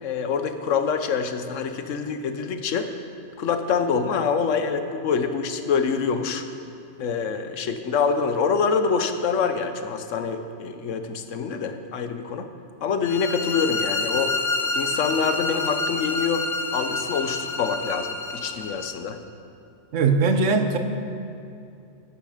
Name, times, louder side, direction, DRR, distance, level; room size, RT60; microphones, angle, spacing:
voice 1, 0.0-2.9 3.4-6.4 7.0-12.5 12.8-14.3 14.7-16.5 16.7-19.2, left 6 dB, 85° left, 8 dB, 1.2 m, -25 dB
sound 1, 13.0-18.9, left 3 dB, 45° left, 1.1 m, -28 dB
voice 2, 19.9-20.8, right 4 dB, 80° right, 7 dB, 1.2 m, -20 dB
11.5 x 10.5 x 5.0 m, 2.6 s
omnidirectional pair, 1.3 m